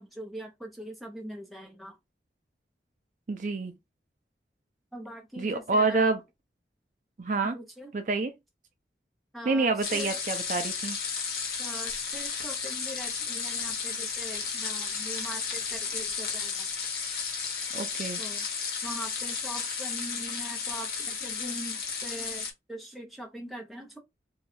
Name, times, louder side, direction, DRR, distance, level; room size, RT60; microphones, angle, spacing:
voice 1, 0.0-2.0 4.9-6.1 7.4-7.9 9.3-10.1 11.6-16.7 18.2-18.5 18.8-24.0, right 1 dB, ahead, 0.6 m, -42 dB
voice 2, 3.3-3.7 5.4-6.2 7.2-7.6 7.9-8.3 9.5-11.0 17.7-18.2, right 3 dB, 45° right, 0.4 m, -27 dB
sound 1, 9.8-22.5, left 5 dB, 60° left, 0.9 m, -33 dB
2.7 x 2.3 x 4.1 m
head